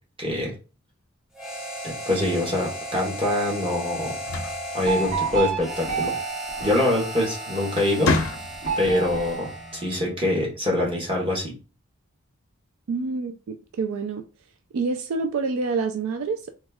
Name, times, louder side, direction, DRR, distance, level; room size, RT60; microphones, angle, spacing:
voice 1, 0.2-0.5 1.8-4.2 4.7-6.1 6.6-8.1 8.8-11.5, left 1 dB, 25° right, 1.2 m, -24 dB
Harmonica, 1.3-10.0, right 1 dB, ahead, 0.5 m, -35 dB
sound 1, 4.0-5.6 7.0-7.3 7.7-8.9, left 3 dB, 80° left, 0.6 m, -28 dB
sound 2, 4.8-7.5 8.6-10.4, right 6 dB, 45° right, 1.7 m, -31 dB
voice 2, 12.9-14.2 14.7-16.5, right 4 dB, 80° right, 0.4 m, -27 dB
3.0 x 2.3 x 3.4 m
head